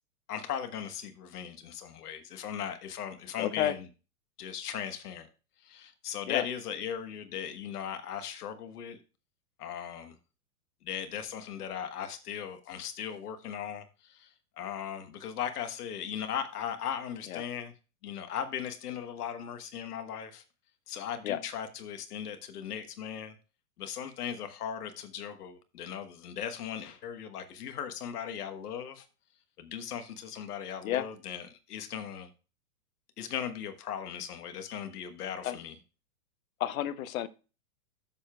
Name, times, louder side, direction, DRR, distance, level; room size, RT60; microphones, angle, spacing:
voice 1, 0.3-3.8 4.4-5.3 5.6-9.0 9.6-10.2 10.8-14.3 14.6-17.7 18.0-20.4 20.9-23.3 23.8-29.0 29.6-32.3 33.2-35.7, left 9 dB, 80° left, 1.4 m, -38 dB
voice 2, 3.4-3.8 6.3-6.4 17.3-17.4 21.2-21.4 30.8-31.1 35.4-35.6 36.6-37.3, left 12 dB, 60° left, 0.9 m, -30 dB
12.5 x 6.8 x 2.3 m
hypercardioid pair, 150°, 46 cm